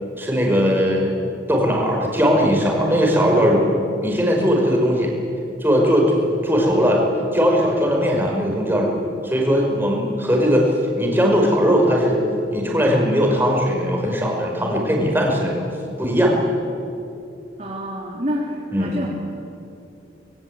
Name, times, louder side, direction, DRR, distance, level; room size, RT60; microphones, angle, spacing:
voice 1, 0.2-1.2 1.5-5.1 5.6-7.1 7.3-9.0 9.2-15.7 16.0-16.3 18.7-19.0, equal, 10° right, -1 dB, 5.3 m, -19 dB
voice 2, 17.6-19.1, equal, 40° right, -4 dB, 3.5 m, -27 dB
25.5 x 22.5 x 8.9 m, 2.7 s
head